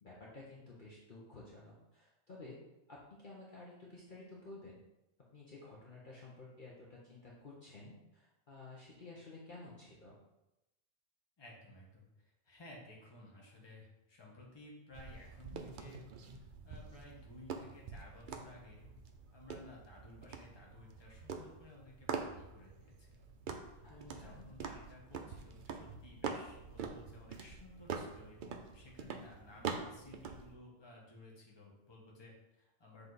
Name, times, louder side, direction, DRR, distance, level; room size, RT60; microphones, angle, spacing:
voice 1, 0.0-2.6 2.9-4.8 5.3-10.2 23.8-24.5, left 2 dB, 45° left, -5 dB, 1.1 m, -53 dB
voice 2, 11.4-16.0 16.3-18.9 19.3-23.3 23.9-33.1, left 2 dB, 20° left, -2 dB, 1.2 m, -56 dB
sound 1, 14.9-30.5, right 5 dB, 55° right, 0.6 m, -45 dB
7.2 x 3.3 x 4.0 m, 0.93 s
omnidirectional pair, 1.3 m